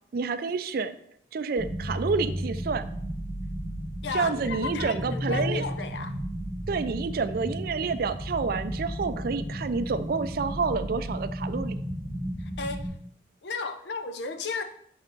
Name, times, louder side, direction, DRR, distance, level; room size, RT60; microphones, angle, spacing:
voice 1, 0.1-0.9 1.3-2.8 4.1-5.6 6.7-11.8, right 4 dB, 55° right, 0.4 m, -29 dB
sound 1, 1.6-12.9, equal, 20° left, 1.7 m, -34 dB
voice 2, 4.0-6.1 12.4-12.9 13.4-14.6, left 4 dB, 70° left, 0.6 m, -34 dB
5.9 x 4.4 x 4.0 m
head